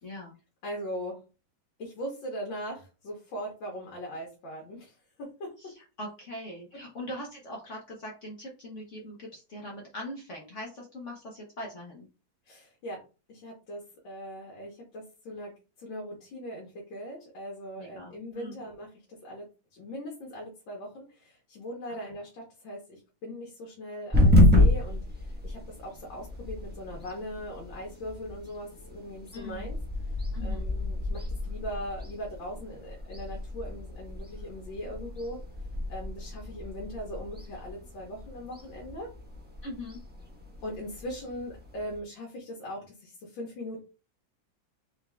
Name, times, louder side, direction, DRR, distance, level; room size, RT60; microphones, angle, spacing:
voice 1, 0.0-0.3 5.6-12.1 17.8-18.6 22.0-22.1 29.3-29.7 30.3-30.7 39.6-40.0, left 1 dB, 50° left, -1 dB, 1.0 m, -41 dB
voice 2, 0.6-1.2 1.8-5.5 12.5-13.0 13.3-15.5 15.8-18.9 19.2-19.5 19.7-29.8 30.0-35.4 35.9-39.1 40.6-43.8, equal, 75° left, -1 dB, 1.9 m, -40 dB
sound 1, 24.1-42.0, left 1 dB, 10° right, 0.7 m, -29 dB
4.2 x 3.9 x 2.3 m, 0.32 s
omnidirectional pair, 2.1 m